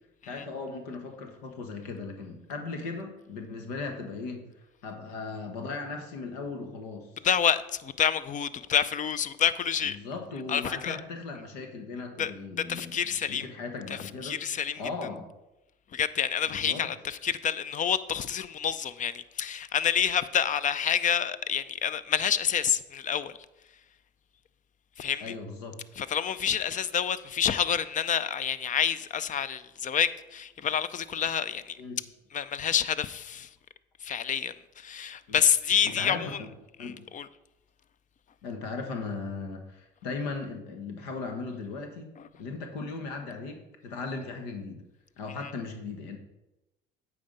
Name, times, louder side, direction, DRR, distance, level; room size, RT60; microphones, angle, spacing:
voice 1, 0.3-4.5 4.8-7.1 9.8-14.4 14.8-15.3 16.5-16.9 25.2-25.8 31.8-32.0 35.3-35.4 35.8-36.5 36.8-37.0 38.4-42.1 42.4-44.8 45.2-46.2, left 4 dB, 85° left, 1.3 m, -37 dB
voice 2, 7.2-10.0 10.5-11.0 12.2-12.3 12.7-13.5 13.9-14.9 15.9-23.3 25.0-25.4 25.9-31.8 32.3-33.5 34.0-36.4 36.8-37.3 42.2-42.3 45.4-45.5, left 8 dB, 40° left, 0.5 m, -28 dB
8.6 x 4.7 x 5.2 m
supercardioid pair, 75°, 21 cm